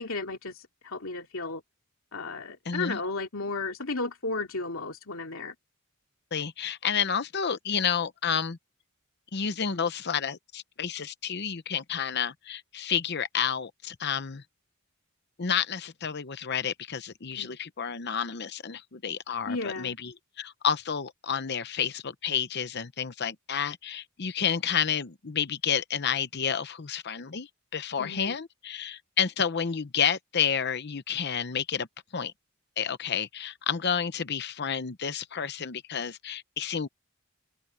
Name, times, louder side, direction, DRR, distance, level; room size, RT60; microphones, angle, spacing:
voice 1, 0.0-1.6 2.1-5.5 17.4-17.5 19.5-20.0 28.0-28.4, left 3 dB, 65° left, 2.8 m, -34 dB
voice 2, 2.7-3.0 6.3-8.6 9.3-14.4 15.4-31.9 32.1-32.3 32.8-36.9, left 7 dB, 50° left, 0.8 m, -30 dB
open air
head